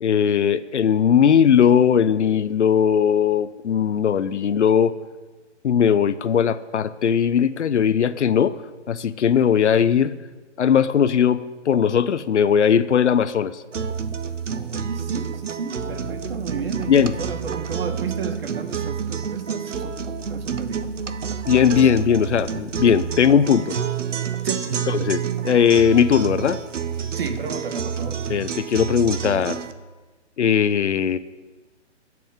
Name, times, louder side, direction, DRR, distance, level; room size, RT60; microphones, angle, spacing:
voice 1, 0.0-4.9 5.6-8.6 8.9-10.1 10.6-13.6 16.9-17.1 21.5-23.7 24.9-26.6 28.3-29.6 30.4-31.2, left 8 dB, 70° left, 14 dB, 0.8 m, -19 dB
sound 1, 13.7-29.7, right 7 dB, 85° right, 0.9 m, -29 dB
voice 2, 14.5-20.0 20.3-20.8 24.4-24.9 27.1-28.2, right 6 dB, 50° right, 8 dB, 1.5 m, -32 dB
sound 2, 18.7-18.8 20.7-23.1 23.5-23.6 24.4-24.5, equal, 15° right, 4.1 m, -45 dB
23.0 x 7.7 x 3.7 m, 1.3 s
hypercardioid pair, 145°, 36 cm